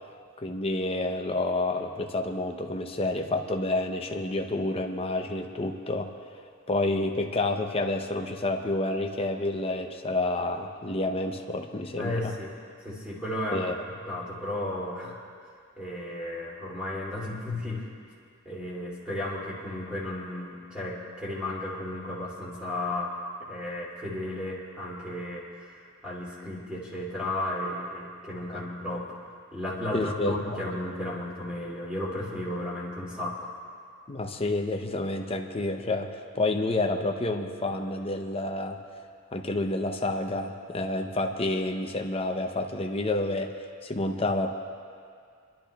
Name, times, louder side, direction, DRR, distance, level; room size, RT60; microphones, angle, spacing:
voice 1, 0.4-6.1 6.7-12.3 13.5-13.7 28.5-28.6 29.9-30.4 34.1-38.8 39.3-43.5 43.8-44.6, left 2 dB, 25° left, 4 dB, 0.7 m, -29 dB
voice 2, 12.0-12.5 12.8-13.7 14.1-15.2 15.8-17.9 18.4-23.1 23.4-33.5, left 1 dB, 5° right, -6 dB, 2.6 m, -34 dB
29.0 x 12.0 x 2.3 m, 2.2 s
head